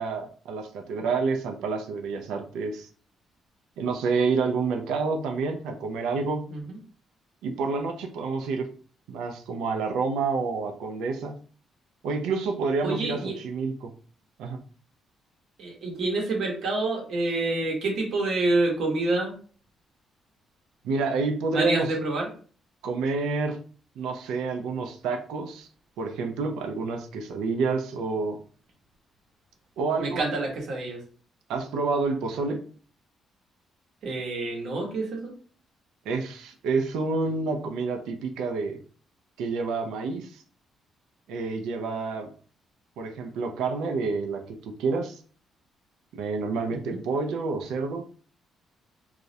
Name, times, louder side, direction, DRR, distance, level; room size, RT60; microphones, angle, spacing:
voice 1, 0.0-2.9 3.8-6.4 7.4-8.7 9.1-11.4 12.0-13.9 14.4-14.6 20.8-21.9 22.8-23.6 24.0-25.7 26.0-28.4 29.8-30.2 31.5-32.6 36.1-38.8 39.4-40.4 41.3-42.3 43.0-45.2 46.1-48.0, right 4 dB, 90° right, 4 dB, 0.3 m, -28 dB
voice 2, 12.8-13.3 15.6-19.3 21.5-22.2 30.0-31.0 34.0-35.3 46.7-47.0, right 2 dB, 70° right, -1 dB, 0.8 m, -27 dB
2.3 x 2.0 x 2.7 m, 0.42 s
cardioid pair, 90°, 0 cm